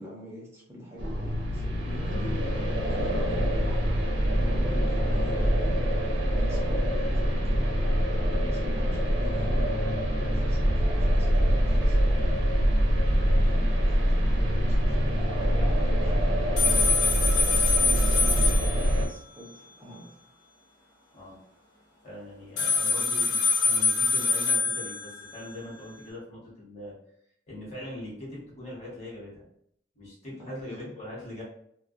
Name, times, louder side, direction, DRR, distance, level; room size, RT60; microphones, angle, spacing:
voice 1, 0.0-2.5 2.8-3.9 4.3-5.8 6.3-7.8 8.2-12.6 13.1-16.8 17.5-20.1 22.6-22.8 30.4-30.9, left 1 dB, 15° right, -6 dB, 0.6 m, -45 dB
sound 1, 1.0-19.1, equal, 85° right, 0.6 m, -24 dB
sound 2, 16.6-19.9 22.6-25.9, left 4 dB, 70° left, 0.9 m, -26 dB
voice 2, 22.0-26.9 27.5-29.5 29.9-31.4, left 1 dB, 35° left, -5 dB, 1.1 m, -41 dB
2.2 x 2.2 x 2.5 m, 0.69 s
head